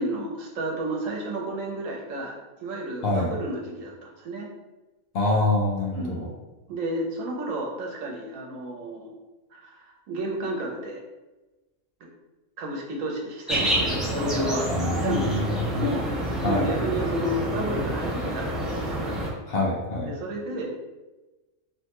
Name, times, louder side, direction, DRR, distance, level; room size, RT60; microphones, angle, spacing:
voice 1, 0.0-4.5 5.9-6.2 6.7-9.1 9.5-11.0 12.6-16.1 16.4-19.2 20.0-20.7, right 1 dB, 80° right, -1 dB, 1.1 m, -31 dB
voice 2, 5.1-6.3 14.7-15.8 16.4-16.6 19.5-20.1, left 2 dB, 65° left, -3 dB, 0.7 m, -25 dB
sound 1, 13.5-19.3, right 1 dB, ahead, 0.4 m, -28 dB
3.1 x 2.1 x 2.9 m, 1.1 s
omnidirectional pair, 1.3 m